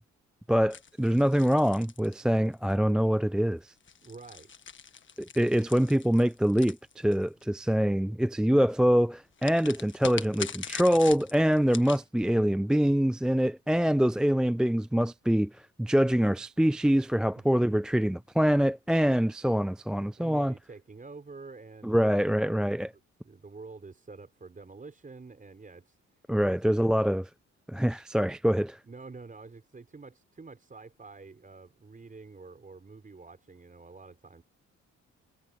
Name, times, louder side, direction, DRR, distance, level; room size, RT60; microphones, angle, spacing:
voice 1, 0.5-3.7 5.2-20.5 21.8-22.9 26.3-27.2 27.7-28.8, equal, 5° right, 0.3 m, -25 dB
sound 1, 0.7-2.7 3.7-7.4 9.4-12.0, left 6 dB, 40° left, 1.5 m, -42 dB
voice 2, 4.0-4.7 17.3-17.6 20.2-22.7 23.2-26.0 27.0-27.2 28.8-34.4, right 4 dB, 25° right, 5.7 m, -48 dB
cardioid pair, 90°, 30 cm